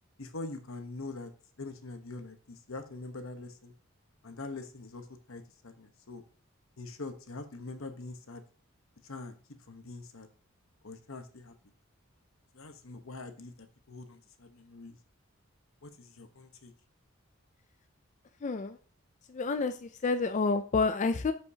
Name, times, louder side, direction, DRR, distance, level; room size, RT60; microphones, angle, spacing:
voice 1, 0.2-1.3 1.6-3.7 4.2-6.2 6.8-8.4 9.0-9.4 9.7-10.3 10.8-11.5 12.5-15.0 15.8-16.7, left 3 dB, 75° left, 7 dB, 1.1 m, -44 dB
voice 2, 18.4-18.8 19.3-21.3, left 4 dB, 35° left, 9 dB, 0.4 m, -29 dB
13.0 x 5.3 x 2.8 m, 0.41 s
head